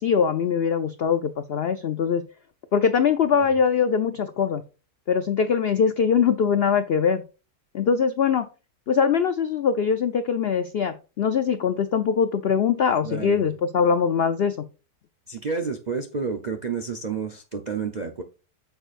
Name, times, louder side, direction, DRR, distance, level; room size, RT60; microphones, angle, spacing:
voice 1, 0.0-2.2 2.7-4.6 5.1-7.2 7.7-8.5 8.9-14.6, left 6 dB, 85° left, 0.5 m, -22 dB
voice 2, 13.0-13.5 15.3-18.2, right 5 dB, 55° right, 0.4 m, -30 dB
9.0 x 6.8 x 2.5 m
omnidirectional pair, 1.7 m